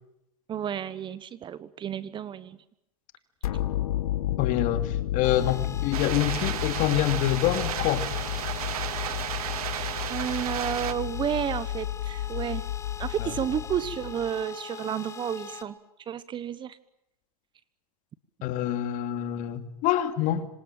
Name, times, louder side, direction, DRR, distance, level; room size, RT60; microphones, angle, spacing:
voice 1, 0.5-2.6 10.1-12.6 13.0-15.8 16.1-16.8, right 9 dB, 25° right, 1.2 m, -31 dB
sound 1, 3.4-14.4, left 13 dB, 70° left, 2.8 m, -32 dB
voice 2, 4.4-8.1 13.2-13.3 18.4-20.5, left 12 dB, 45° left, 2.6 m, -26 dB
sound 2, 5.2-15.6, left 7 dB, 15° left, 2.4 m, -42 dB
sound 3, 5.9-10.9, right 12 dB, 75° right, 1.5 m, -34 dB
26.5 x 25.0 x 9.0 m
hypercardioid pair, 125°, 19 cm